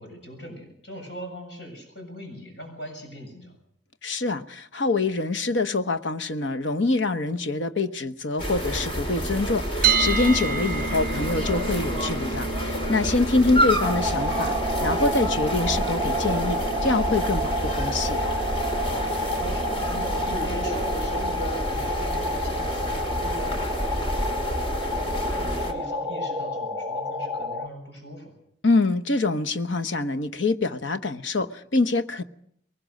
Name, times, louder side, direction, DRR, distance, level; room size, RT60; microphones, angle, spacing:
voice 1, 0.0-3.6 10.3-10.6 18.9-28.3, equal, 65° left, 7.3 m, -41 dB
voice 2, 4.0-18.2 28.6-32.2, left 3 dB, 85° left, 1.1 m, -25 dB
sound 1, 8.4-25.7, right 1 dB, 30° left, 2.8 m, -29 dB
sound 2, 9.8-21.7, right 5 dB, 50° right, 0.8 m, -32 dB
sound 3, 13.8-27.7, left 1 dB, 15° right, 1.3 m, -29 dB
22.0 x 20.0 x 6.5 m
head